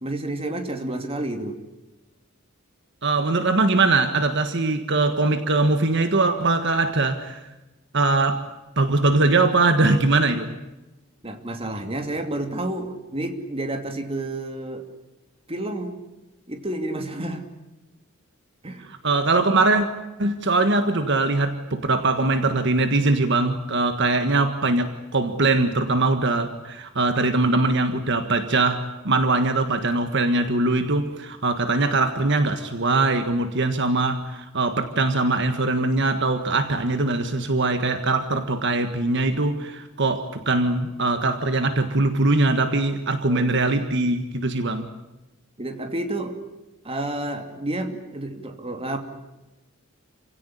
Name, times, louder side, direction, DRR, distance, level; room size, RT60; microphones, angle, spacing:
voice 1, 0.0-1.6 11.2-14.9 15.5-16.0 16.5-17.5 18.6-18.9 43.2-43.6 45.6-46.4 46.8-49.0, right 1 dB, 30° right, 6 dB, 2.7 m, -30 dB
voice 2, 3.0-7.5 7.9-8.5 8.8-10.5 18.8-19.9 20.2-44.9, right 2 dB, 60° right, 8 dB, 1.6 m, -22 dB
28.5 x 17.0 x 10.0 m, 1.0 s
head